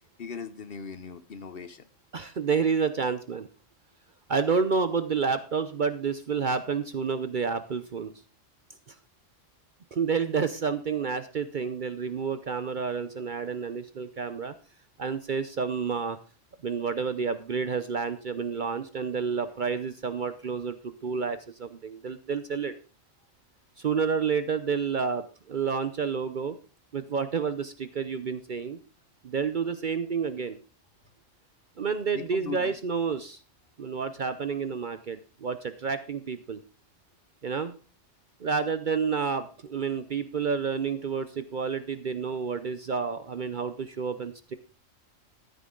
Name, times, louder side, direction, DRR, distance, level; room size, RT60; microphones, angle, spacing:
voice 1, 0.2-1.8 32.1-32.7, left 5 dB, 50° left, 12 dB, 1.0 m, -39 dB
voice 2, 2.1-3.5 4.3-8.1 8.9-9.0 9.9-14.5 15.0-16.2 16.6-22.7 23.8-26.6 26.9-28.8 29.2-30.6 31.8-33.4 33.8-36.6 37.4-37.7 38.4-44.6, right 5 dB, 50° right, 11 dB, 0.7 m, -29 dB
14.0 x 9.4 x 3.8 m, 0.35 s
omnidirectional pair, 1.3 m